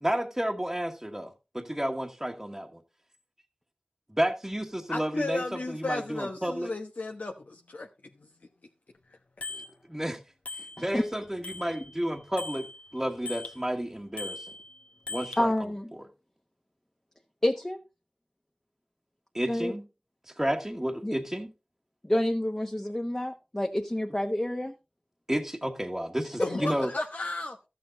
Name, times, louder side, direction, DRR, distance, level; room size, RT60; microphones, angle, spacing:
voice 1, 0.0-2.8 4.2-6.7 9.5-9.6 9.9-10.2 10.8-12.7 12.9-14.4 15.1-15.7 19.3-19.8 20.4-21.5 25.3-26.9, equal, 15° right, 1.2 m, -31 dB
voice 2, 4.9-7.9 26.4-27.7, left 2 dB, 85° left, 1.0 m, -34 dB
Bicycle bell, 9.4-9.7 10.5-11.1 11.4-13.6 14.2-15.4, left 3 dB, 60° left, 1.4 m, -40 dB
voice 3, 15.4-15.9 17.4-17.8 19.5-19.7 21.0-21.1 22.1-24.7 26.4-26.6, left 1 dB, 25° left, 1.1 m, -28 dB
13.5 x 7.0 x 3.8 m
wide cardioid pair, 45°, 3 cm